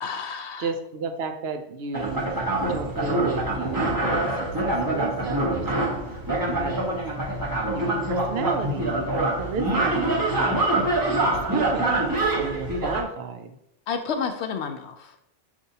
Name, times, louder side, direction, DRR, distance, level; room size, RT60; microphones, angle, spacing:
voice 1, 0.0-0.7 6.5-6.6 13.9-15.2, left 6 dB, 70° left, 7 dB, 0.8 m, -30 dB
voice 2, 0.6-6.0 6.3-7.0 7.3-7.4 7.7-10.9 11.5-13.6, right 4 dB, 65° right, 7 dB, 0.8 m, -34 dB
sound 1, 1.9-13.0, right 2 dB, 20° right, 0.8 m, -25 dB
6.6 x 2.6 x 2.7 m, 0.77 s
omnidirectional pair, 1.2 m